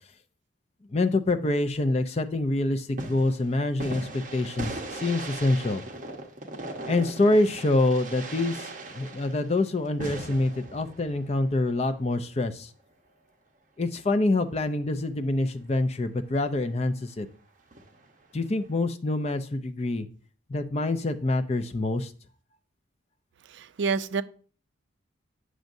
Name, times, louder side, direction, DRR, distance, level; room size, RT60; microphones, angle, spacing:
voice 1, 0.9-5.8 6.9-12.7 13.8-17.3 18.3-20.1 20.5-22.1, left 2 dB, 30° left, 0.5 m, -26 dB
sound 1, 3.0-12.1 17.7-18.1, right 2 dB, 40° right, 1.0 m, -39 dB
voice 2, 23.5-24.2, right 5 dB, 65° right, 0.4 m, -28 dB
9.0 x 6.3 x 2.6 m
head